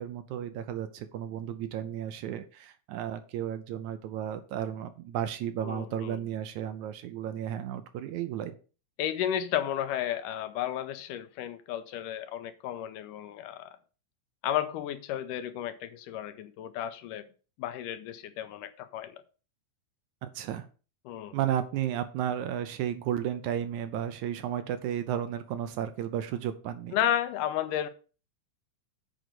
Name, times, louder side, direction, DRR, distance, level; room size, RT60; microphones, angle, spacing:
voice 1, 0.0-8.6 20.2-20.7 21.3-27.0, right 10 dB, 75° right, 1.9 m, -33 dB
voice 2, 5.6-6.2 9.0-13.7 14.4-17.2 17.6-19.2 21.1-21.4 26.9-27.9, left 11 dB, 85° left, 2.3 m, -33 dB
7.9 x 5.1 x 6.1 m
omnidirectional pair, 3.7 m